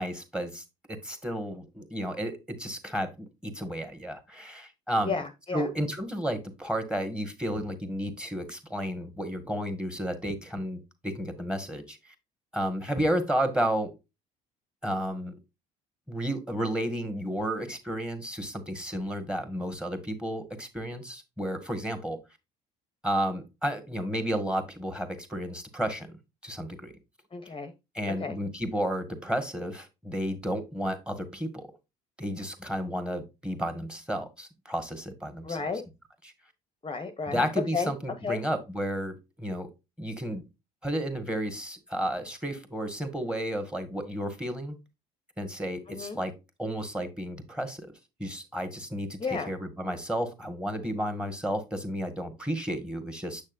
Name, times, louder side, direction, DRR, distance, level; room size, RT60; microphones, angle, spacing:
voice 1, 0.0-5.2 5.5-12.1 12.5-13.9 14.8-15.3 16.1-22.2 23.0-26.9 27.9-31.7 32.2-35.6 36.2-36.3 37.3-39.7 40.0-40.4 40.8-44.8 45.4-46.3 46.6-47.9 48.2-53.4, equal, 5° right, 9 dB, 1.8 m, -32 dB
voice 2, 5.0-5.7 27.3-27.7 28.1-28.4 35.4-35.8 36.8-37.5 37.7-37.9 38.2-38.4 45.9-46.2 49.2-49.5, left 5 dB, 25° left, 7 dB, 0.9 m, -32 dB
7.1 x 6.4 x 2.6 m, 0.24 s
supercardioid pair, 70°, 19 cm